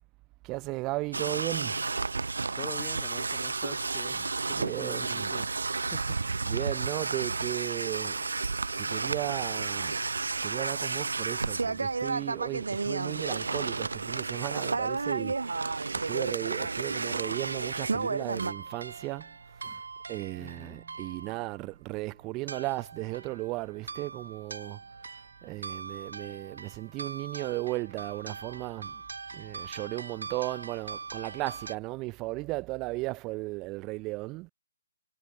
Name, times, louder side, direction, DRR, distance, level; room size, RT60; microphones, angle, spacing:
voice 1, 0.4-1.9 4.5-5.4 6.4-8.2 8.8-10.0 10.4-19.8 20.1-24.8 25.4-29.0 29.3-34.5, right 22 dB, 15° right, 1.9 m, -36 dB
sound 1, 1.1-18.5, right 4 dB, 90° right, 0.7 m, -31 dB
voice 2, 2.4-5.6 5.9-6.2 19.6-19.8 20.4-20.8, left 6 dB, 5° left, 1.8 m, -46 dB
sound 2, 17.2-31.8, right 4 dB, 70° right, 2.7 m, -43 dB
hypercardioid pair, 170°, 0 cm